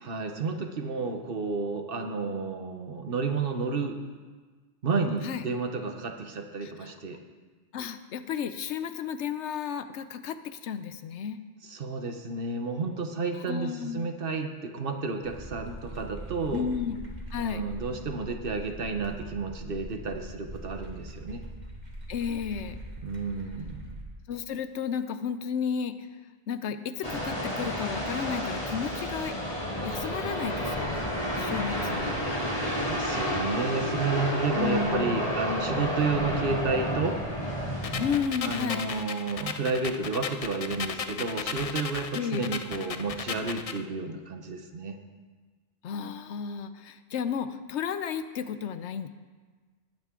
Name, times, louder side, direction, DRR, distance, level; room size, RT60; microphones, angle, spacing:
voice 1, 0.0-4.0 4.8-7.2 11.6-16.7 17.4-21.4 23.0-24.0 31.7-37.2 38.4-45.0, right 4 dB, 55° right, 5 dB, 1.2 m, -31 dB
voice 2, 7.7-11.4 13.5-14.1 16.5-17.0 17.3-17.6 22.1-22.8 24.3-25.9 26.5-29.4 29.8-31.1 31.4-32.1 34.6-35.3 38.0-38.8 42.1-42.5 45.8-49.1, left 7 dB, 80° left, 11 dB, 1.0 m, -32 dB
sound 1, 15.2-24.0, right 1 dB, 40° right, 1.6 m, -42 dB
sound 2, 27.0-38.2, equal, 30° left, 2.6 m, -30 dB
sound 3, 37.8-43.8, left 6 dB, 50° left, 0.4 m, -36 dB
19.0 x 8.8 x 3.8 m, 1.4 s
omnidirectional pair, 1.2 m